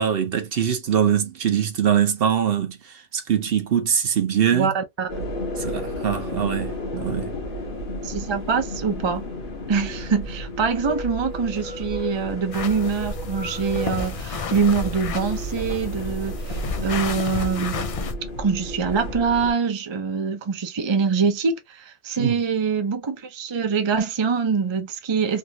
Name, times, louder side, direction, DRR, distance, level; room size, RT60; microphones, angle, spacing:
voice 1, 0.0-4.7 5.6-7.3 22.2-22.4, right 8 dB, 60° right, 0.8 m, -23 dB
voice 2, 4.5-5.3 8.0-9.3 9.7-17.8 18.4-25.4, right 5 dB, 35° right, 0.5 m, -24 dB
sound 1, 5.1-19.5, left 1 dB, 45° left, 1.2 m, -33 dB
sound 2, 12.5-18.1, left 4 dB, 70° left, 0.3 m, -31 dB
3.5 x 2.4 x 2.8 m
omnidirectional pair, 1.2 m